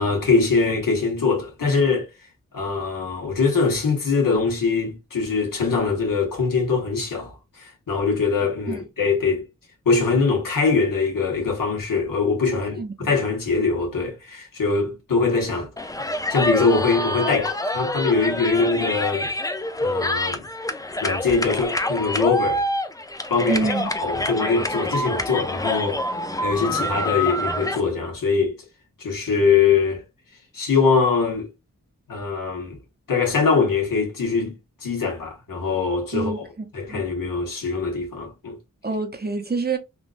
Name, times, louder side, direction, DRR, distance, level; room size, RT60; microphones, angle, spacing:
voice 1, 0.0-2.1 2.5-9.4 9.8-15.7 16.3-19.3 19.8-20.5 21.0-22.6 23.3-28.5 29.0-30.0 30.5-31.5 32.1-32.8 33.1-34.5 34.8-36.4 36.7-38.6, left 4 dB, 80° left, 1.4 m, -22 dB
voice 2, 12.8-13.1 23.5-23.9 36.1-37.0 38.8-39.8, right 3 dB, 30° right, 0.7 m, -27 dB
sound 1, 15.8-27.8, left 1 dB, 10° left, 0.4 m, -26 dB
3.7 x 2.4 x 2.5 m
wide cardioid pair, 60°, 33 cm